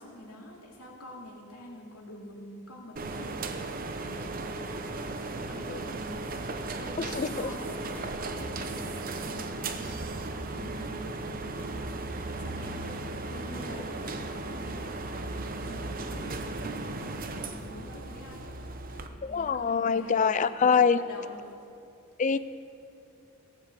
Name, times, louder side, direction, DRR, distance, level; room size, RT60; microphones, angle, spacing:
voice 1, 0.0-4.7 5.2-18.4 18.9-21.5 22.3-22.4, left 1 dB, 85° left, -2 dB, 2.8 m, -46 dB
sound 1, 3.0-19.1, right 2 dB, 40° right, 0.7 m, -36 dB
voice 2, 7.2-7.5 19.2-21.0 22.2-22.4, left 6 dB, 35° left, 15 dB, 0.4 m, -24 dB
sound 2, 7.9-8.5 9.8-10.3 11.6-12.1 13.5-13.9, equal, 5° left, 1.8 m, -50 dB
16.0 x 7.5 x 7.6 m, 2.6 s
head